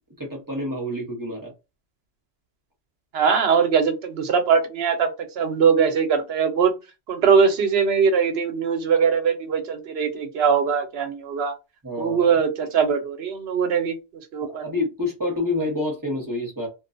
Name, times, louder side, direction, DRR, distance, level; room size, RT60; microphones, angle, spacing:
voice 1, 0.2-1.5 11.8-12.3 14.4-16.7, left 2 dB, 20° right, 0.9 m, -28 dB
voice 2, 3.1-5.1 5.4-6.7 7.1-11.5 12.0-14.0 14.3-14.6, right 6 dB, 70° right, 0.9 m, -21 dB
2.4 x 2.2 x 2.5 m
omnidirectional pair, 1.1 m